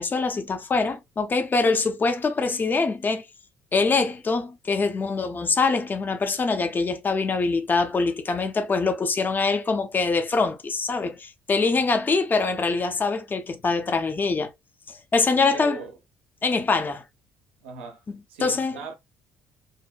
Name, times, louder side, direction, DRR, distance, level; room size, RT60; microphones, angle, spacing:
voice 1, 0.0-3.2 3.7-14.5 14.9-15.8 16.4-17.0 18.4-18.8, left 4 dB, 30° left, 0.6 m, -24 dB
voice 2, 15.3-15.9 17.6-18.0 18.3-19.0, right 4 dB, 80° right, 0.5 m, -38 dB
2.7 x 2.1 x 2.3 m
hypercardioid pair, 50°, 6 cm